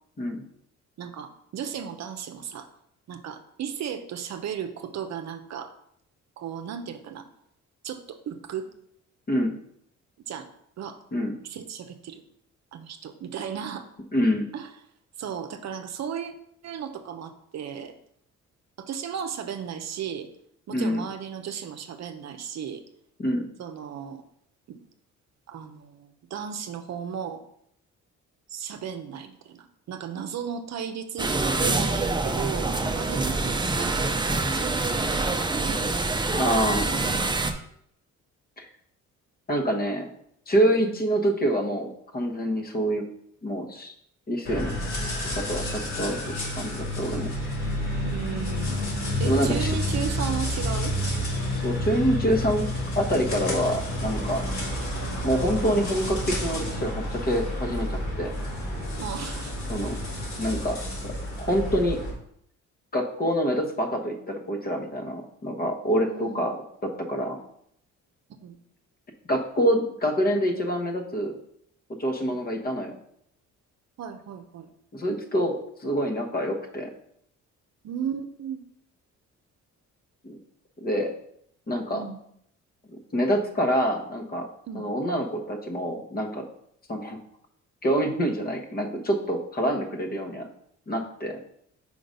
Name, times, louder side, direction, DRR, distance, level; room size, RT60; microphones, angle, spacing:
voice 1, 1.0-2.7 3.1-5.7 6.4-7.3 7.8-8.7 10.3-10.5 10.8-11.0 11.4-12.2 12.7-13.9 14.5-14.7 15.2-16.3 16.6-17.9 18.8-20.3 20.7-22.8 23.6-24.2 24.7-24.8 25.5-27.4 28.5-31.3 31.6-35.4 35.7-35.8 40.8-41.0 48.0-48.8 49.2-50.9 54.6-54.7 59.0-59.5 66.0-66.5 68.4-68.6 74.0-74.7 77.8-78.6 81.9-82.2 84.7-84.9, right 8 dB, 60° right, 8 dB, 0.7 m, -35 dB
voice 2, 14.1-14.5 20.7-21.0 23.2-23.5 36.4-36.9 38.6-38.7 39.5-40.1 40.5-43.0 43.4-43.9 44.3-44.7 45.3-46.2 46.6-47.3 49.2-49.7 51.6-52.7 52.9-54.4 55.2-58.3 59.7-60.0 60.4-62.0 62.9-67.4 69.3-71.3 72.0-73.0 74.9-76.9 80.2-80.4 80.8-81.1 81.7-82.0 82.9-84.5 84.7-86.4 86.9-87.2 87.8-90.5 90.9-91.4, equal, 30° left, 2 dB, 1.2 m, -26 dB
sound 1, 31.2-37.5, right 3 dB, 15° right, 0.6 m, -26 dB
sound 2, 44.5-62.1, left 1 dB, 65° left, 2.7 m, -30 dB
5.1 x 3.9 x 5.2 m, 0.71 s
cardioid pair, 90°, 30 cm